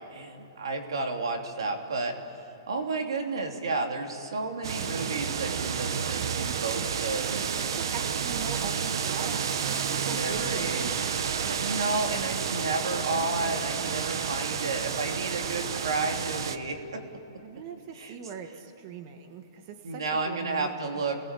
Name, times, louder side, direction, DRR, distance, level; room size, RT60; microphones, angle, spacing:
voice 1, 0.1-2.2 2.7-7.6 10.0-10.9 11.5-17.0 17.9-18.1 19.8-21.2, right 3 dB, 90° right, 3 dB, 3.3 m, -32 dB
sound 1, 4.6-16.6, right 7 dB, 65° right, 1.3 m, -30 dB
voice 2, 7.5-10.9 17.4-21.0, right 6 dB, 35° right, 6 dB, 1.7 m, -41 dB
30.0 x 19.5 x 8.5 m, 2.8 s
hypercardioid pair, 165°, 2 cm